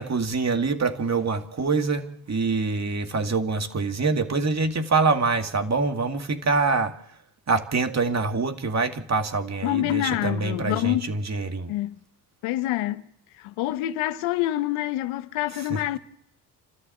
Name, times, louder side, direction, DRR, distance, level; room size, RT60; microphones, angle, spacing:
voice 1, 0.0-7.0 7.5-11.7 15.7-16.0, right 4 dB, 35° right, 2.4 m, -25 dB
voice 2, 9.6-11.1 11.7-12.0 12.4-13.0 13.4-16.0, left 15 dB, 80° left, 1.2 m, -26 dB
28.5 x 13.5 x 7.9 m
supercardioid pair, 65°, 48 cm